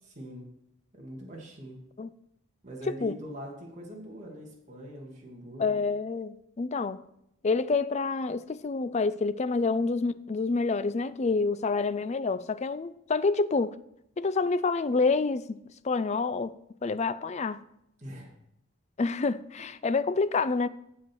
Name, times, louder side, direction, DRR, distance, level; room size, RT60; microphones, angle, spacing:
voice 1, 0.1-0.5 0.9-1.8 2.6-5.8 18.0-18.3, equal, 35° right, 2.3 m, -43 dB
voice 2, 5.6-7.0 7.4-13.7 14.2-15.6 15.8-16.5 16.8-17.6 19.0-20.7, left 4 dB, 35° left, 0.4 m, -27 dB
9.4 x 8.0 x 4.6 m
head